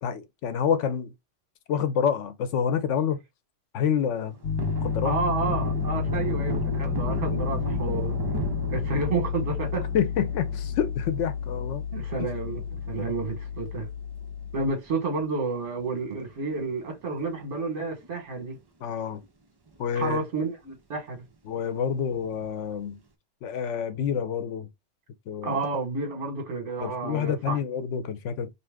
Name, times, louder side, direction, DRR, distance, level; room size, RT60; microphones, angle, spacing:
voice 1, 0.0-1.1 1.7-3.2 3.7-4.4 4.8-5.2 7.3-7.5 9.9-11.8 18.8-19.2 19.8-20.2 21.5-23.0 23.4-24.7 25.3-25.6 26.8-28.5, left 8 dB, 90° left, 1.0 m, -28 dB
Thunder, 4.2-14.9 15.3-15.4 15.7-17.2 17.5-17.7 18.0-18.8 19.2-19.3 19.7-19.8 22.1-22.7, right 3 dB, 35° right, 0.4 m, -37 dB
Piano, 4.4-14.7, left 7 dB, 65° left, 1.0 m, -31 dB
voice 2, 5.0-8.2 8.7-9.8 11.9-13.9 14.5-18.6 19.9-21.2 25.4-27.6, right 3 dB, 80° right, 1.4 m, -30 dB
2.8 x 2.6 x 3.3 m
omnidirectional pair, 1.2 m